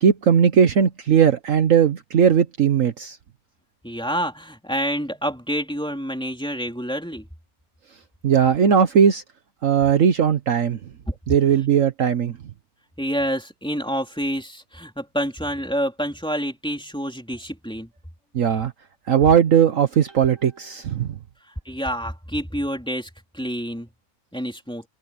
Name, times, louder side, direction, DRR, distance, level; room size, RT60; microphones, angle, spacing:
voice 1, 0.0-3.2 8.2-9.2 9.6-10.8 11.3-12.4 18.3-18.7 19.1-21.2, right 7 dB, 60° right, 1.3 m, -18 dB
voice 2, 3.8-7.3 11.1-11.2 13.0-17.9 21.6-23.9 24.3-24.8, equal, 5° left, 3.5 m, -28 dB
omnidirectional pair, 1.6 m